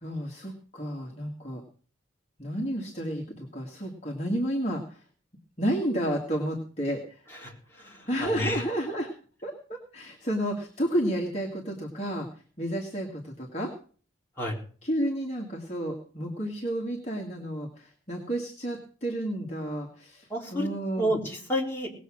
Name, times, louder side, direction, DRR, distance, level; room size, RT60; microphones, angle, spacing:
voice 1, 0.0-1.6 2.4-5.0 5.6-7.3 8.1-9.1 9.4-12.3 12.6-13.7 14.8-21.1, equal, 35° left, -1 dB, 2.1 m, -31 dB
voice 2, 7.8-8.6 14.4-14.6 20.3-20.7 21.0-21.9, equal, 10° left, -3 dB, 3.8 m, -30 dB
19.5 x 7.4 x 6.4 m, 0.43 s
head